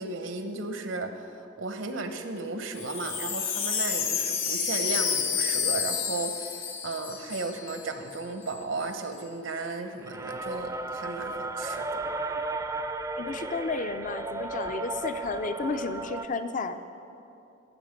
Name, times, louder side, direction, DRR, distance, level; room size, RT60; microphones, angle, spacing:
voice 1, 0.0-12.0, right 3 dB, 75° right, 7 dB, 0.9 m, -35 dB
Wind chime, 2.6-7.9 8.1-8.2 8.4-8.9, left 7 dB, 90° left, 1.4 m, -30 dB
sound 1, 10.0-16.2, right 2 dB, 15° right, 0.4 m, -34 dB
voice 2, 13.2-16.8, left 4 dB, 40° left, 10 dB, 0.5 m, -32 dB
14.0 x 7.3 x 5.2 m, 2.7 s
head